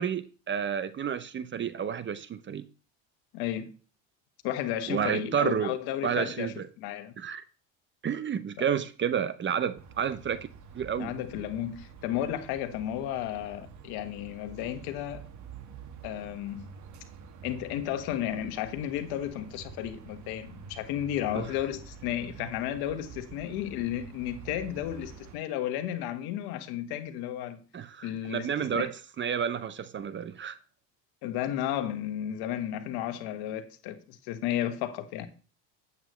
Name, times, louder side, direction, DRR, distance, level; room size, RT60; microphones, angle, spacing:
voice 1, 0.0-2.6 4.9-5.7 6.0-6.7 7.2-7.4 8.0-10.5 10.7-11.1 21.3-21.4 27.7-28.9 29.2-30.6, right 8 dB, 30° right, 0.7 m, -30 dB
voice 2, 3.3-3.7 4.4-7.1 8.6-8.7 11.0-15.2 16.0-16.7 17.4-27.6 28.0-28.9 31.2-35.3, left 11 dB, 65° left, 1.5 m, -33 dB
sound 1, 9.8-25.4, right 6 dB, 45° right, 1.4 m, -47 dB
8.8 x 8.2 x 3.1 m
supercardioid pair, 85°, 40 cm